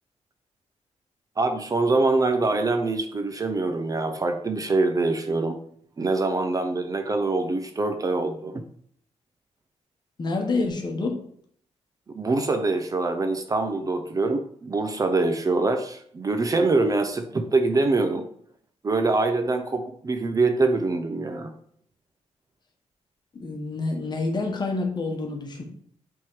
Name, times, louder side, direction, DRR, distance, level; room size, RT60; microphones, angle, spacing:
voice 1, 1.4-5.6 6.0-8.6 12.1-18.2 18.8-21.5, right 3 dB, 30° right, 7 dB, 0.5 m, -24 dB
voice 2, 10.2-11.2 23.3-25.6, left 3 dB, 35° left, 2 dB, 1.1 m, -28 dB
5.7 x 3.6 x 4.6 m, 0.63 s
wide cardioid pair, 135°, 12 cm